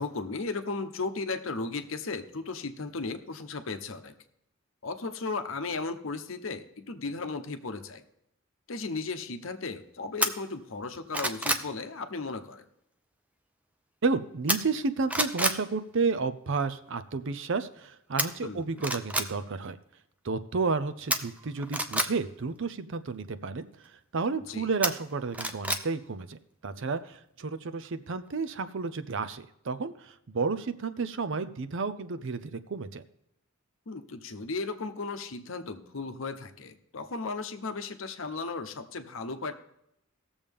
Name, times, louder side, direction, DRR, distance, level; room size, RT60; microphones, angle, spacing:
voice 1, 0.0-4.1 4.8-8.0 8.7-12.6 18.4-18.8 24.5-24.7 33.9-39.5, left 3 dB, 65° left, 8 dB, 0.8 m, -35 dB
sound 1, 10.2-10.3 10.8-11.7 14.5-14.8 15.1-15.6 18.2-18.3 18.8-19.3 21.1-22.1 24.8-25.8 26.2-26.3, right 1 dB, 5° right, 0.5 m, -28 dB
voice 2, 14.0-19.8 20.2-33.0, right 4 dB, 65° right, 12 dB, 0.6 m, -31 dB
18.0 x 7.1 x 3.5 m, 0.81 s
head